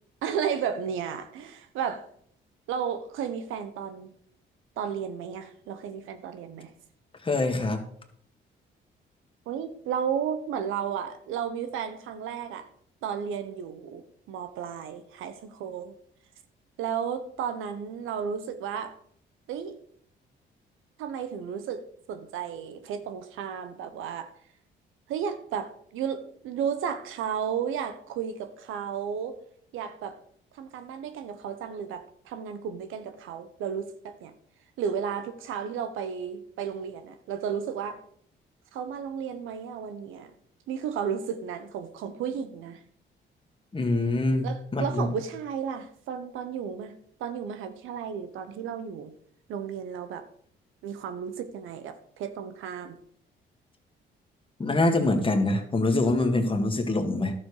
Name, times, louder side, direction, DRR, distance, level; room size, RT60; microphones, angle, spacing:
voice 1, 0.2-2.1 2.7-4.1 4.8-6.7 9.5-12.7 13.0-15.9 16.8-18.9 19.5-19.7 21.0-21.8 22.1-24.3 25.1-29.4 29.7-30.2 30.5-34.3 34.8-38.0 38.7-40.3 40.7-42.8 44.4-49.1 49.5-50.3 50.8-53.0, right 7 dB, 90° right, 1.1 m, -33 dB
voice 2, 7.2-7.8 43.7-45.1 54.6-57.3, left 2 dB, 25° left, 1.9 m, -25 dB
12.0 x 7.2 x 4.9 m
cardioid pair, 90°, 20 cm